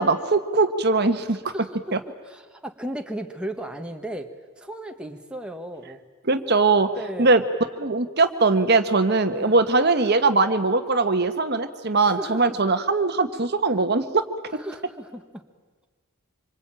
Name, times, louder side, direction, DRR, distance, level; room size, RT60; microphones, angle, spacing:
voice 1, 0.0-1.5 1.9-2.0 6.2-6.9 7.2-7.4 7.8-14.2 14.5-14.6, right 3 dB, 50° right, 8 dB, 1.3 m, -21 dB
voice 2, 1.5-6.0 7.0-7.4 9.3-9.6 12.0-12.6 14.6-15.5, right 1 dB, 5° right, 3 dB, 1.5 m, -36 dB
26.0 x 25.5 x 9.0 m, 1.4 s
head